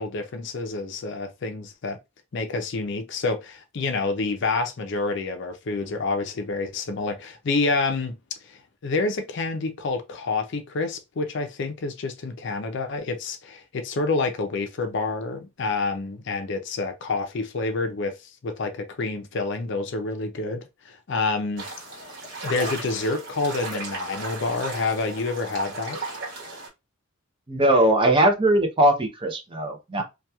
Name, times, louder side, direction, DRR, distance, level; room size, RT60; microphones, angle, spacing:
voice 1, 0.0-2.0 2.3-8.2 8.5-18.1 18.4-21.7 22.4-26.0, left 3 dB, 55° left, 0.4 m, -28 dB
sound 1, 21.6-26.7, right 2 dB, 55° right, 1.2 m, -35 dB
voice 2, 27.5-30.0, right 1 dB, 25° right, 0.4 m, -20 dB
2.8 x 2.2 x 2.2 m
head